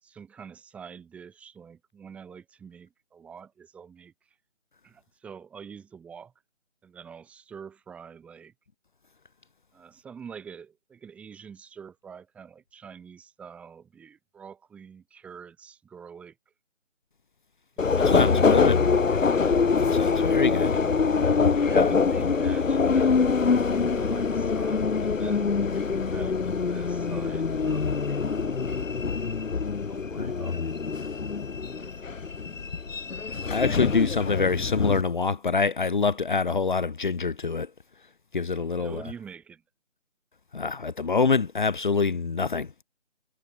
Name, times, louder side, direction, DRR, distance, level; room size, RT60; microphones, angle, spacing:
voice 1, 0.0-4.1 4.8-6.3 6.8-8.5 9.7-16.4 17.8-18.5 21.5-28.6 29.0-30.7 31.3-31.4 31.8-31.9 38.8-39.6, right 6 dB, 5° right, 3.7 m, -46 dB
Subway metro underground, 17.8-35.0, left 5 dB, 85° left, 1.1 m, -24 dB
voice 2, 17.9-18.8 19.4-20.8 21.7-21.9 30.2-30.3 33.5-37.7 38.3-39.0 40.5-42.8, left 4 dB, 40° left, 2.4 m, -26 dB
figure-of-eight pair, 165°, 38 cm